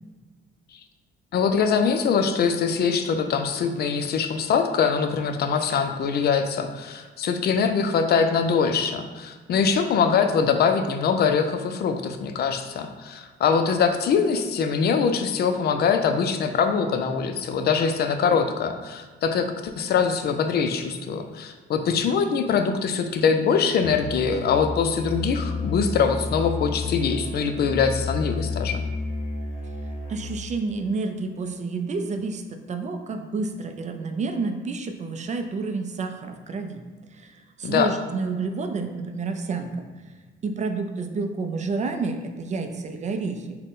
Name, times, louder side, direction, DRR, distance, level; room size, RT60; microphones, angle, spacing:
voice 1, 1.3-28.8 37.6-37.9, left 6 dB, 55° left, 7 dB, 0.4 m, -23 dB
Musical instrument, 23.8-30.6, left 3 dB, 35° left, 0.9 m, -31 dB
voice 2, 30.1-36.8 37.1-39.9 40.4-43.6, right 4 dB, 35° right, 6 dB, 0.4 m, -29 dB
3.9 x 2.1 x 3.6 m, 1.4 s
cardioid pair, 90°, 20 cm